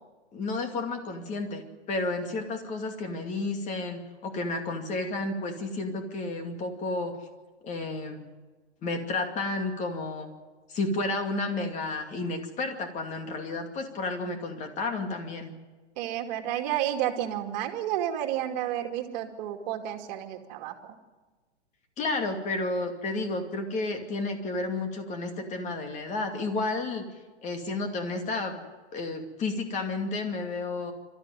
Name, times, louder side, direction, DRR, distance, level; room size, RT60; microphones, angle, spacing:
voice 1, 0.3-1.6 1.9-7.1 7.6-8.3 8.8-10.3 10.7-15.5 22.0-27.0 27.4-28.6 28.9-30.9, left 3 dB, 20° left, 5 dB, 2.5 m, -31 dB
voice 2, 16.0-21.0, right 11 dB, 40° right, 5 dB, 2.4 m, -31 dB
26.5 x 13.5 x 9.2 m, 1.3 s
hypercardioid pair, 140°, 34 cm